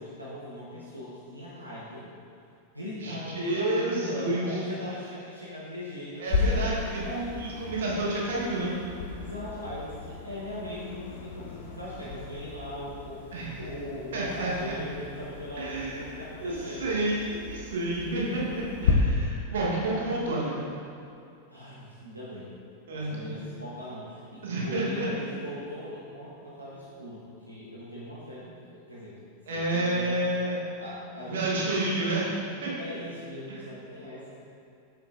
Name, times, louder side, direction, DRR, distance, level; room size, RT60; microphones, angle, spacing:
voice 1, 0.0-2.1 2.7-6.5 7.0-7.4 9.2-13.2 13.6-16.9 18.0-18.2 18.4-18.5 21.5-22.5 22.9-27.2 27.5-29.2 29.5-30.2 30.8-31.9 32.8-34.4, left 1 dB, 85° right, -8 dB, 0.9 m, -40 dB
voice 2, 3.0-4.6 6.2-7.0 7.4-8.7 13.3-13.6 14.1-14.7 15.5-16.1 16.4-20.6 22.9-23.2 24.4-25.1 29.5-30.6 31.3-32.3 32.6-32.7 33.5-33.6, right 2 dB, 60° right, -4 dB, 1.3 m, -29 dB
sound 1, 6.3-18.9, left 5 dB, 60° left, 0.7 m, -35 dB
6.8 x 6.0 x 2.6 m, 2.5 s
figure-of-eight pair, 90°, 0 cm